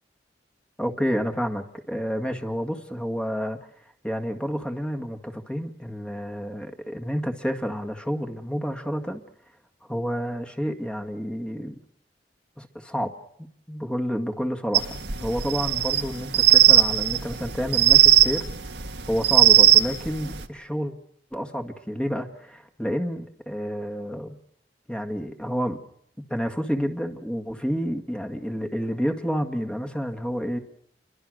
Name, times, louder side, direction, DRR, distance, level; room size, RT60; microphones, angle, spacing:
voice 1, 0.8-3.6 4.0-9.2 9.9-11.8 12.6-13.1 13.4-18.5 19.1-20.9 21.3-24.4 24.9-25.8 26.3-30.6, equal, 5° left, 5 dB, 1.9 m, -29 dB
sound 1, 14.7-20.4, right 13 dB, 75° right, 1.7 m, -18 dB
29.0 x 23.0 x 6.5 m, 0.67 s
head